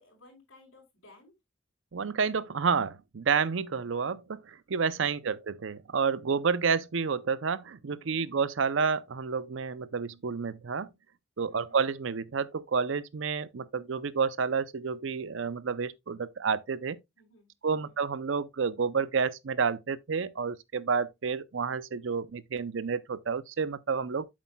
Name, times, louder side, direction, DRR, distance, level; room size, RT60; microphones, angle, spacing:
voice 1, 0.0-1.3 8.0-8.4 11.5-11.8 17.2-18.0, left 1 dB, 70° left, 4.7 m, -58 dB
voice 2, 1.9-10.9 11.4-17.0 17.6-24.2, right 5 dB, 65° right, 0.5 m, -30 dB
8.4 x 7.4 x 2.2 m
head